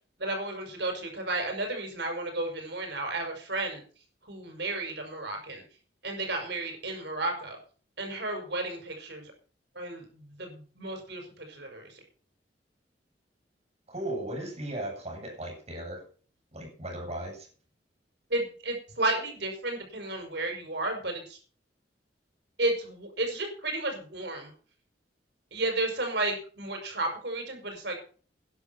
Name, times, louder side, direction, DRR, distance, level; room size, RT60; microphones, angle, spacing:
voice 1, 0.2-3.8 4.2-5.6 6.0-7.6 8.0-9.3 9.8-11.9 18.3-21.4 22.6-24.5 25.5-28.0, right 2 dB, 65° right, 4 dB, 5.4 m, -32 dB
voice 2, 13.9-16.0 16.5-17.5, right 1 dB, 35° right, 0 dB, 7.7 m, -36 dB
13.0 x 10.5 x 6.0 m, 0.40 s
head